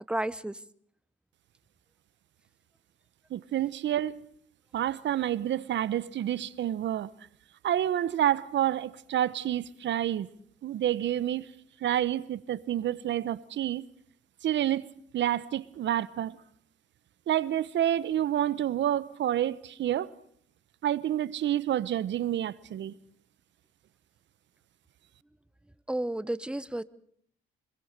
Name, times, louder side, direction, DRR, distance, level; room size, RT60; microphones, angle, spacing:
voice 1, 0.1-0.6 25.9-26.8, right 1 dB, 5° right, 1.0 m, -31 dB
voice 2, 3.3-4.3 4.7-7.1 7.6-10.3 10.6-11.5 11.8-13.9 14.4-14.9 15.1-16.4 17.3-20.1 20.8-22.9, right 11 dB, 65° right, 1.0 m, -28 dB
25.5 x 20.5 x 6.7 m
cardioid pair, 90°, 20 cm